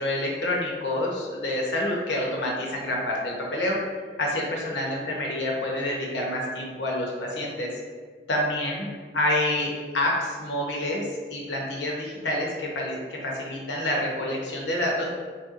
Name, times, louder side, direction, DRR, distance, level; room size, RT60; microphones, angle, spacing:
voice 1, 0.0-3.8 4.2-7.7 8.3-8.9 9.1-15.1, left 1 dB, 80° left, -2 dB, 0.9 m, -28 dB
4.3 x 3.4 x 2.5 m, 1.5 s
head